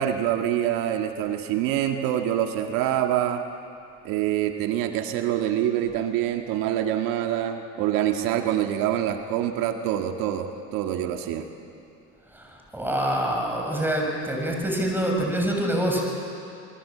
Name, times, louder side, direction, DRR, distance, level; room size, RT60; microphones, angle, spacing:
voice 1, 0.0-3.4 4.0-11.5, right 11 dB, 70° right, 5 dB, 1.9 m, -25 dB
voice 2, 12.3-16.0, right 1 dB, 5° right, 0 dB, 7.0 m, -26 dB
28.0 x 21.5 x 8.6 m, 2.6 s
supercardioid pair, 105°, 35 cm